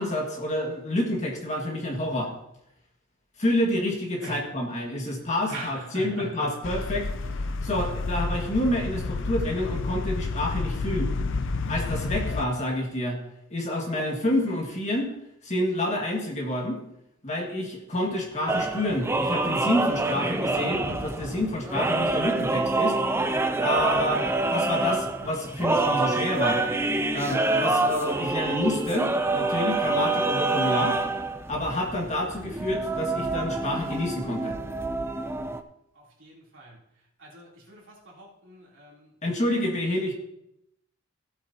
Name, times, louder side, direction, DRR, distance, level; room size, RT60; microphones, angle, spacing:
voice 1, 0.0-2.3 3.4-7.1 7.4-11.1 11.7-13.2 13.5-15.1 15.4-16.8 17.2-23.0 23.6-26.6 27.1-31.0 31.5-34.6 39.2-40.1, left 1 dB, 35° left, 0 dB, 1.9 m, -28 dB
voice 2, 5.5-6.5 36.2-36.8 37.2-39.1, right 1 dB, 65° right, -4 dB, 3.3 m, -41 dB
sound 1, 6.6-12.5, left 3 dB, 60° left, 0.5 m, -30 dB
sound 2, 18.5-35.6, right 2 dB, 10° right, 0.5 m, -26 dB
16.0 x 8.3 x 2.9 m, 0.82 s
head